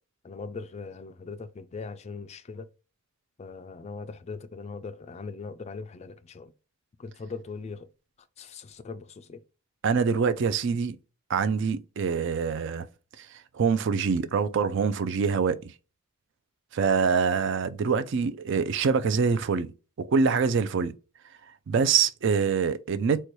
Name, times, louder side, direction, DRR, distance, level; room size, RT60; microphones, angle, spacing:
voice 1, 0.2-2.7 3.4-6.5 7.0-7.9 8.4-9.4, left 4 dB, 30° left, 0.3 m, -40 dB
voice 2, 9.8-11.0 11.3-12.9 13.2-13.3 13.5-15.7 16.7-19.7 20.0-20.9 21.7-23.3, right 5 dB, 55° right, 0.4 m, -25 dB
4.2 x 2.3 x 3.0 m
head